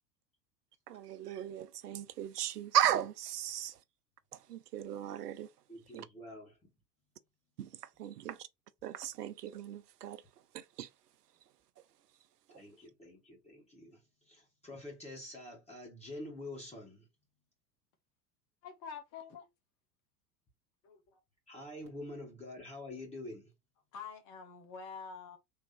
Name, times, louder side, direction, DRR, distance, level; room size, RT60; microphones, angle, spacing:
voice 1, 0.9-3.8 4.3-5.5 5.9-6.1 7.6-8.5 8.8-10.2 10.5-10.9 12.5-12.6, right 10 dB, 75° right, 0.6 m, -36 dB
voice 2, 5.7-6.6 12.5-17.1 21.5-23.5, left 1 dB, 15° left, 1.7 m, -47 dB
voice 3, 18.6-19.5 20.8-21.2 23.9-25.4, left 6 dB, 40° left, 1.1 m, -47 dB
3.7 x 2.8 x 4.3 m
figure-of-eight pair, 80°, 48 cm